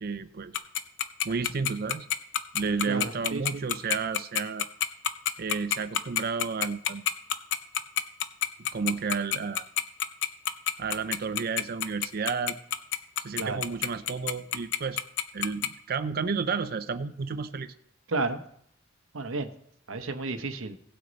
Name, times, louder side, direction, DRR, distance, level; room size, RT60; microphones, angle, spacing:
voice 1, 0.0-0.6 1.2-2.1 2.5-4.7 5.4-7.0 8.6-9.7 10.8-12.6 13.2-15.0 15.3-17.7, right 5 dB, 50° right, 11 dB, 0.5 m, -31 dB
Tick-tock, 0.5-15.7, left 10 dB, 60° left, 0.6 m, -27 dB
voice 2, 2.9-3.6 13.4-13.6 18.1-18.4 19.1-19.5 19.9-20.8, right 3 dB, 75° right, 8 dB, 0.9 m, -32 dB
17.5 x 6.3 x 4.0 m, 0.71 s
head